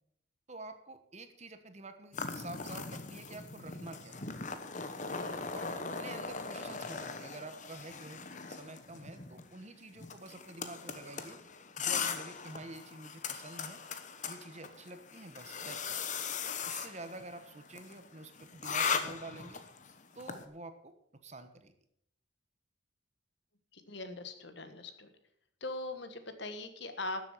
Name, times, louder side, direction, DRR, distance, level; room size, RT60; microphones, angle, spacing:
voice 1, 0.5-4.2 5.5-8.2 8.5-11.4 11.8-13.8 14.3-16.0 16.6-19.6 20.1-20.9 21.2-21.7, right 2 dB, 35° right, 9 dB, 1.2 m, -48 dB
sound 1, 2.1-20.4, left 5 dB, 40° left, 1.0 m, -39 dB
voice 2, 23.7-25.1 25.6-27.3, left 2 dB, 60° left, 8 dB, 1.5 m, -41 dB
13.0 x 7.7 x 7.3 m, 0.71 s
head